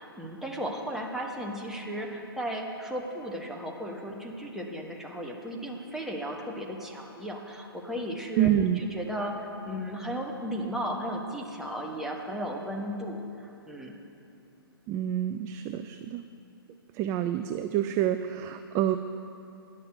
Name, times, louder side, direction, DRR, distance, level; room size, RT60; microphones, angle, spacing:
voice 1, 0.0-13.9, equal, 5° right, -1 dB, 1.2 m, -35 dB
voice 2, 8.4-8.8 14.9-16.2 16.9-19.0, right 11 dB, 25° right, 9 dB, 0.3 m, -27 dB
10.5 x 6.6 x 8.8 m, 2.8 s
figure-of-eight pair, 120°, 13 cm